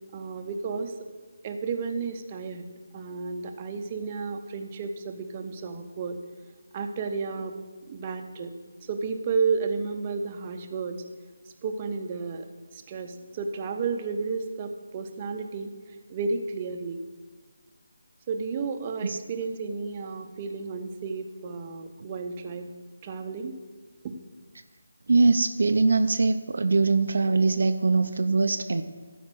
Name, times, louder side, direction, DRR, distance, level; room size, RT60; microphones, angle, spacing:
voice 1, 0.1-1.0 1.4-2.7 2.9-6.2 6.7-7.5 7.9-8.5 8.9-11.0 11.6-12.5 12.7-15.7 16.1-17.0 18.3-22.7 23.0-23.6 24.0-24.1, right 4 dB, 25° right, 5 dB, 0.7 m, -32 dB
voice 2, 25.1-28.8, right 3 dB, 60° right, 7 dB, 0.5 m, -22 dB
12.5 x 5.1 x 6.3 m, 1.5 s
figure-of-eight pair, 160°, 0 cm